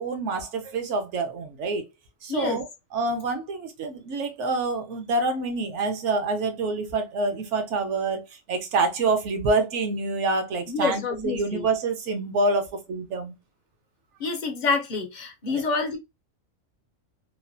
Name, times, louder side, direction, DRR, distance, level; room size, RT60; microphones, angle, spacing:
voice 1, 0.0-1.8 2.2-2.7 2.9-8.2 8.5-13.3 15.5-15.6, right 3 dB, 65° right, 0.9 m, -27 dB
voice 2, 2.3-2.6 10.7-11.7 14.2-16.0, left 4 dB, 55° left, 0.5 m, -27 dB
3.1 x 2.1 x 2.5 m
omnidirectional pair, 1.4 m